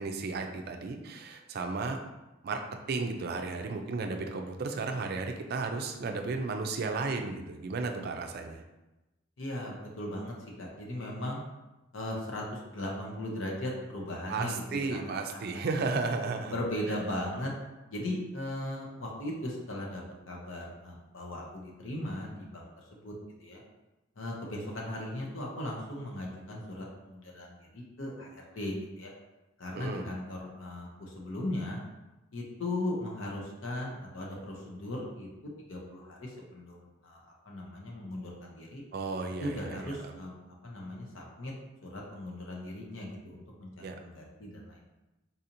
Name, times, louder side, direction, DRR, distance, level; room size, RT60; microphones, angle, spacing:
voice 1, 0.0-2.0 2.4-2.6 2.9-8.6 14.3-16.5 16.9-17.0 29.7-30.0 38.9-40.1 43.8-43.9, right 3 dB, 50° right, 4 dB, 0.4 m, -34 dB
voice 2, 9.4-11.4 11.9-15.6 16.5-17.5 17.9-22.7 23.0-23.1 23.4-23.6 24.2-29.1 29.6-31.8 32.3-35.3 35.7-38.8 39.4-40.3 40.6-41.5 41.8-44.8, left 1 dB, 75° left, -2 dB, 0.7 m, -38 dB
4.0 x 2.8 x 2.6 m, 1.0 s
head